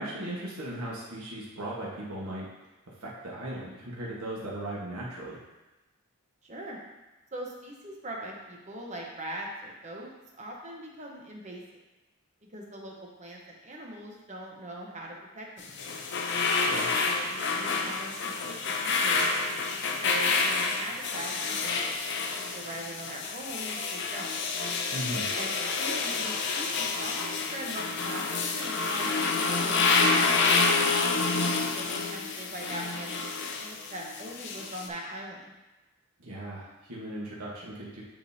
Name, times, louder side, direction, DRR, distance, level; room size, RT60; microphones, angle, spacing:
voice 1, 0.0-2.5 3.0-5.4 16.5-16.9 24.9-25.3 36.2-38.0, right 1 dB, 85° right, -5 dB, 1.3 m, -37 dB
voice 2, 6.4-6.8 7.3-11.6 12.5-15.7 16.9-24.3 25.3-31.0 31.7-35.5, right 1 dB, 35° right, -1 dB, 0.9 m, -41 dB
sound 1, 15.6-34.9, left 4 dB, 55° left, 0.6 m, -28 dB
9.1 x 3.8 x 2.7 m, 1.1 s
head